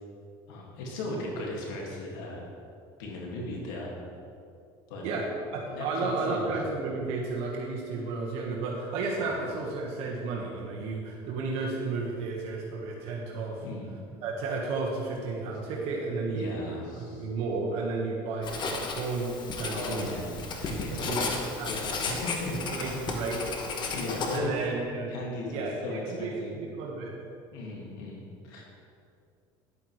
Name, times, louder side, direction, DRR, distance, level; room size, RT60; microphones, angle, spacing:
voice 1, 0.5-2.4 3.0-3.9 4.9-5.1 5.7-6.5 9.2-9.4 13.6-13.9 16.3-17.3 19.7-20.2 20.5-21.3 21.7-22.7 23.9-24.6 25.1-26.5 27.5-28.6, left 2 dB, 85° left, -2 dB, 2.0 m, -37 dB
voice 2, 5.0-13.6 14.2-16.6 17.0-20.1 20.6-21.7 22.1-22.2 22.5-23.6 24.3-25.1 25.5-27.2, right 3 dB, 65° right, -2 dB, 1.4 m, -33 dB
Writing, 18.4-24.4, left 4 dB, 40° left, 1.2 m, -34 dB
10.0 x 8.6 x 3.2 m, 2.4 s
supercardioid pair, 105°, 11 cm